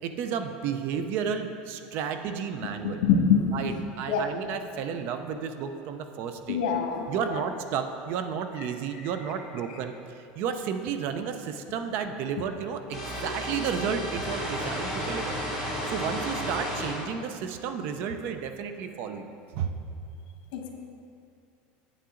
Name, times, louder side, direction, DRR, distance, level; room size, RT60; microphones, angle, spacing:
voice 1, 0.0-3.0 3.5-6.6 7.1-15.4 15.7-19.3 19.5-19.7, right 7 dB, 50° right, 8 dB, 0.6 m, -32 dB
voice 2, 2.8-3.5 4.1-4.3 6.5-7.4 8.6-8.7 9.0-9.3 20.5-20.7, left 6 dB, 80° left, 2 dB, 1.4 m, -26 dB
sound 1, 12.9-17.1, equal, 10° right, 2.2 m, -32 dB
8.6 x 8.2 x 3.8 m, 2.5 s
supercardioid pair, 155°, 4 cm